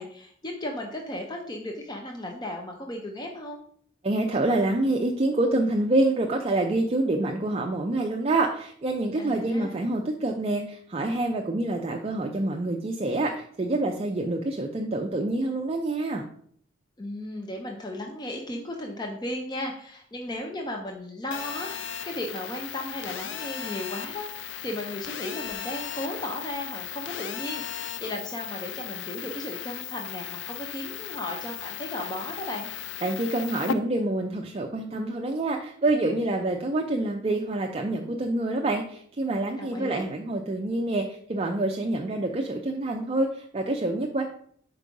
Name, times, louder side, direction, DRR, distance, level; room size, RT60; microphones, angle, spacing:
voice 1, 0.0-3.6 9.2-9.8 17.0-32.7 39.6-40.1, left 1 dB, 20° left, 1 dB, 0.6 m, -35 dB
voice 2, 4.0-16.2 33.0-44.2, right 2 dB, 30° right, 1 dB, 0.5 m, -27 dB
Telephone, 21.3-33.7, left 9 dB, 65° left, 0.4 m, -36 dB
4.8 x 4.6 x 5.3 m, 0.62 s
head